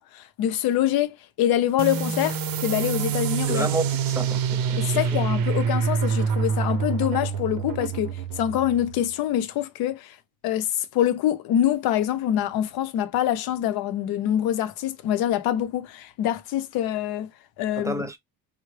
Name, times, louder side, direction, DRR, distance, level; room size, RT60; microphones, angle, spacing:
voice 1, 0.0-3.7 4.8-10.2 10.4-17.3 17.6-18.1, left 11 dB, 85° left, 0.7 m, -25 dB
sound 1, 1.8-9.0, right 6 dB, 70° right, 0.6 m, -26 dB
voice 2, 3.5-4.8 17.8-18.2, right 2 dB, 10° right, 0.6 m, -30 dB
3.5 x 2.1 x 3.2 m
cardioid pair, 115°, 36 cm